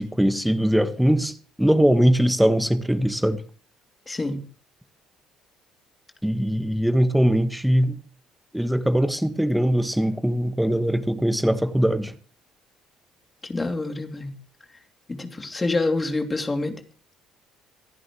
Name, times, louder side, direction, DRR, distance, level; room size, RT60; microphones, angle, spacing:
voice 1, 0.0-3.4 6.2-8.0 8.5-12.1, equal, 5° right, 1.5 m, -21 dB
voice 2, 4.1-4.4 13.4-14.3 15.1-16.8, left 2 dB, 25° left, 3.0 m, -27 dB
26.5 x 11.0 x 3.2 m
hypercardioid pair, 55°, 0 cm